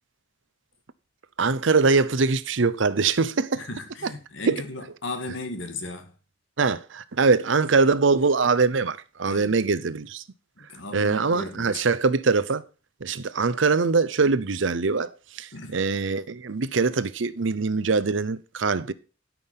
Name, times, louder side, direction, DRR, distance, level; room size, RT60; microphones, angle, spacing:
voice 1, 1.4-3.6 4.0-4.1 4.5-4.6 6.6-10.2 10.9-12.6 13.0-18.9, right 4 dB, 75° right, 0.7 m, -23 dB
voice 2, 3.6-6.1 9.3-9.5 10.6-11.8 15.5-15.7, left 2 dB, 75° left, 2.0 m, -36 dB
12.5 x 6.1 x 5.6 m
head